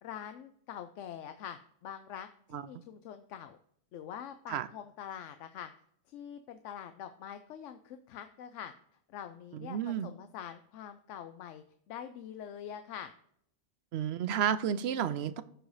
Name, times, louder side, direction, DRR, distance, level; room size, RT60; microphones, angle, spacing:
voice 1, 0.0-3.6 3.9-5.7 6.1-8.7 9.1-13.1, left 9 dB, 90° left, 0.9 m, -45 dB
voice 2, 9.5-10.1 13.9-15.4, right 9 dB, 65° right, 0.8 m, -31 dB
14.0 x 4.8 x 2.6 m
omnidirectional pair, 1.2 m